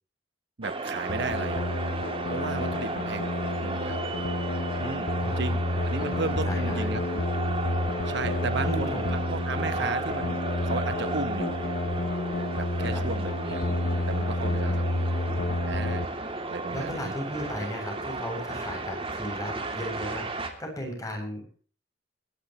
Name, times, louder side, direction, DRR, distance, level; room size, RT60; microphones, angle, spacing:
sound 1, 0.6-20.5, right 2 dB, 30° right, 2.9 m, -34 dB
voice 1, 0.6-1.6 2.3-3.3 3.6-4.0 4.8-5.1 5.4-7.2 8.1-11.6 12.5-13.6 14.1-15.1 15.6-16.1 16.5-17.1, right 3 dB, 60° right, 12 dB, 1.0 m, -34 dB
sound 2, 1.1-16.1, left 1 dB, 50° left, 0.9 m, -30 dB
voice 2, 5.2-5.7 6.0-6.1 6.5-6.9 8.6-9.1 12.9-13.0 16.7-21.6, equal, 20° left, 2 dB, 7.7 m, -36 dB
24.0 x 13.0 x 3.1 m, 0.42 s
head